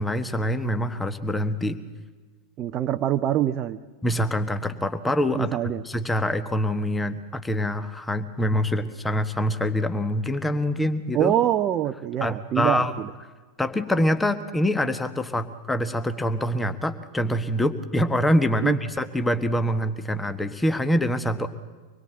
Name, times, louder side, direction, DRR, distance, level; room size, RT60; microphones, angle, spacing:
voice 1, 0.0-1.8 4.0-5.6 5.8-11.4 12.2-12.9 13.6-21.5, left 1 dB, 10° left, 10 dB, 1.3 m, -25 dB
voice 2, 2.6-3.8 5.3-5.8 11.1-13.1 18.6-18.8, right 11 dB, 30° right, 8 dB, 0.7 m, -24 dB
25.0 x 21.5 x 7.8 m, 1.4 s
figure-of-eight pair, 90°, 0 cm